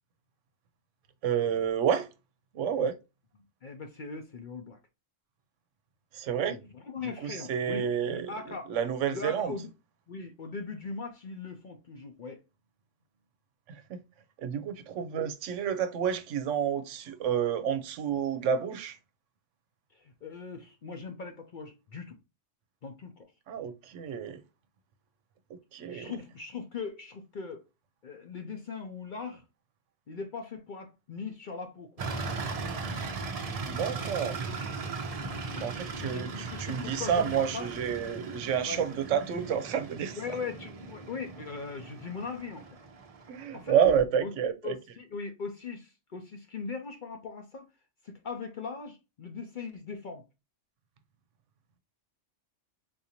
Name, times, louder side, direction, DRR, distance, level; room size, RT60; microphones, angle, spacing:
voice 1, 1.2-2.1 2.5-3.0 6.1-6.6 7.2-8.3 8.7-9.5 13.7-14.0 14.4-19.0 23.5-24.4 25.7-26.1 33.6-34.4 35.6-40.2 43.3-44.7, right 8 dB, 80° right, 0.9 m, -29 dB
voice 2, 3.6-4.8 6.5-8.7 9.1-9.7 10.1-12.4 19.9-22.2 22.8-23.3 25.9-27.6 28.0-29.4 30.1-31.9 34.2-34.4 35.2-35.7 36.0-37.7 38.6-38.8 40.1-42.7 43.5-43.8 44.2-44.3 44.6-47.6 48.0-50.2, left 4 dB, 55° left, 0.6 m, -40 dB
sound 1, 32.0-43.7, right 4 dB, 45° right, 0.5 m, -38 dB
3.9 x 2.6 x 2.8 m
omnidirectional pair, 1.3 m